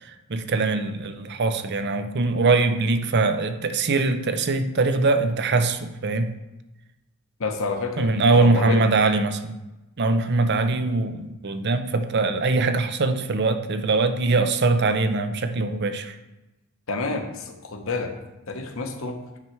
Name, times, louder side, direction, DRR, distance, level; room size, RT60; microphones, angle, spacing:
voice 1, 0.3-6.3 8.0-9.5 10.0-16.1, right 3 dB, 50° right, 9 dB, 0.6 m, -22 dB
voice 2, 7.4-8.8 16.9-18.1 18.5-19.2, left 3 dB, 65° left, 5 dB, 1.0 m, -29 dB
9.5 x 4.4 x 4.5 m, 1.0 s
head